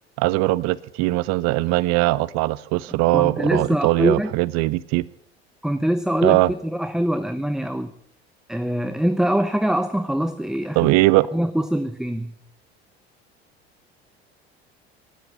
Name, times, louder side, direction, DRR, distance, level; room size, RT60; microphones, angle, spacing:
voice 1, 0.2-5.1 6.2-6.5 10.8-11.3, right 19 dB, 55° right, 20 dB, 0.7 m, -20 dB
voice 2, 3.1-4.3 5.6-7.9 8.5-10.9 11.3-12.3, equal, ahead, 10 dB, 0.7 m, -23 dB
19.5 x 8.0 x 8.1 m, 0.68 s
hypercardioid pair, 70°, 31 cm